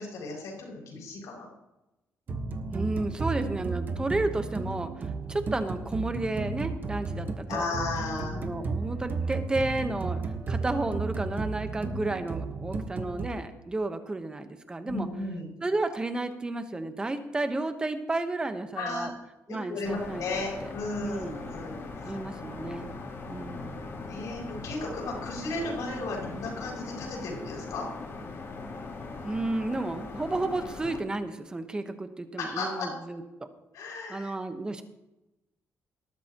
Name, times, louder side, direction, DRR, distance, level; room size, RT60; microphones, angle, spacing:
voice 1, 0.0-1.5 7.5-8.4 14.8-15.5 18.8-19.1 19.5-21.8 24.1-27.9 32.4-32.9 33.7-34.3, left 3 dB, 85° left, -1 dB, 6.3 m, -35 dB
sound 1, 2.3-13.3, right 4 dB, 35° right, 1.3 m, -33 dB
voice 2, 2.7-7.7 8.3-10.2 10.5-15.1 15.6-19.1 19.5-20.2 21.0-21.4 22.0-22.9 23.3-23.8 29.2-33.2 34.1-34.8, right 2 dB, 15° right, 8 dB, 1.1 m, -32 dB
sound 2, 19.8-31.0, left 3 dB, 50° left, 3.6 m, -40 dB
19.5 x 13.0 x 3.0 m, 0.95 s
cardioid pair, 160°, 5 cm